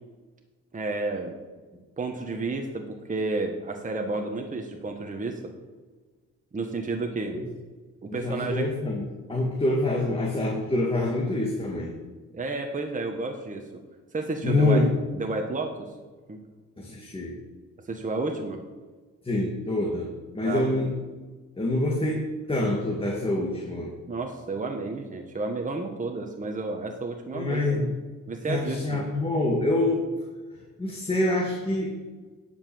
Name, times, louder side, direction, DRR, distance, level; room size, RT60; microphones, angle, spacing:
voice 1, 0.7-1.3 2.0-5.4 6.5-7.4 8.0-8.7 12.3-13.6 14.1-14.8 15.1-15.9 16.3-16.4 17.9-18.6 20.4-20.7 24.1-27.8 28.3-29.0, right 3 dB, 25° right, 3 dB, 1.3 m, -31 dB
voice 2, 8.2-9.0 9.3-11.9 14.4-14.9 16.8-17.4 19.2-20.9 21.6-23.9 27.3-27.9 28.5-30.1 30.8-32.0, left 2 dB, 20° left, -2 dB, 2.1 m, -26 dB
10.5 x 5.7 x 7.1 m, 1.4 s
cardioid pair, 90°, 30 cm